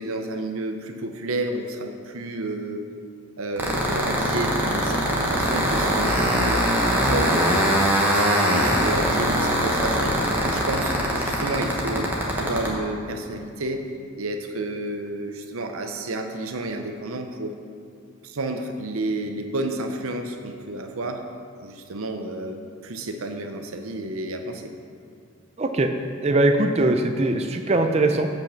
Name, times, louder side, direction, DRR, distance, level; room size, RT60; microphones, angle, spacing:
voice 1, 0.0-2.8 3.4-7.6 8.0-10.1 10.4-12.1 12.3-13.9 14.2-17.6 18.2-21.2 21.6-24.7, right 2 dB, 75° right, 5 dB, 0.7 m, -31 dB
sound 1, 3.6-12.7, equal, 10° right, 1.1 m, -21 dB
voice 2, 25.6-25.9 26.2-28.3, right 2 dB, 30° right, 5 dB, 0.4 m, -21 dB
8.4 x 5.2 x 5.8 m, 2.3 s
head